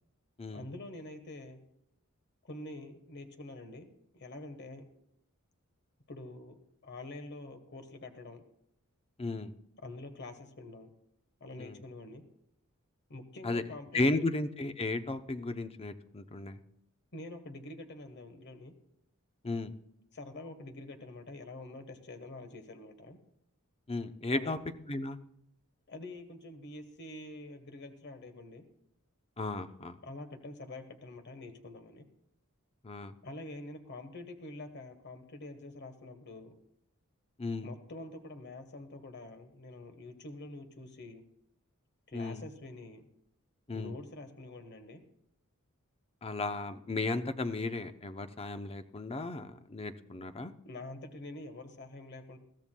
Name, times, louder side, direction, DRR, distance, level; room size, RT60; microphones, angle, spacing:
voice 1, 0.5-1.6 2.4-4.9 6.1-8.4 9.8-10.9 11.4-12.2 13.1-14.1 17.1-18.7 20.1-23.2 24.3-24.6 25.9-28.6 30.0-32.0 33.2-36.5 37.6-41.2 42.1-43.1 43.7-45.0 50.6-52.4, left 2 dB, 55° left, 7 dB, 1.3 m, -46 dB
voice 2, 9.2-9.5 11.6-11.8 13.4-13.6 13.9-16.6 19.4-19.7 23.9-24.6 24.9-25.2 29.4-30.0 32.8-33.1 37.4-37.7 42.1-42.4 43.7-43.9 46.2-50.5, left 2 dB, 25° left, 9 dB, 0.7 m, -34 dB
21.0 x 14.0 x 2.3 m, 0.77 s
head